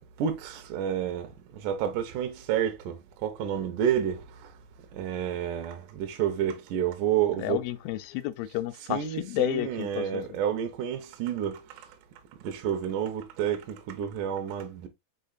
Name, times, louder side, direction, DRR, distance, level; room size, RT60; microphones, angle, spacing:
voice 1, 0.2-4.5 4.9-7.6 8.9-11.6 12.4-14.9, right 9 dB, 80° right, 2.0 m, -30 dB
voice 2, 7.4-10.2, left 15 dB, 85° left, 2.3 m, -31 dB
5.6 x 3.8 x 2.4 m
omnidirectional pair, 4.1 m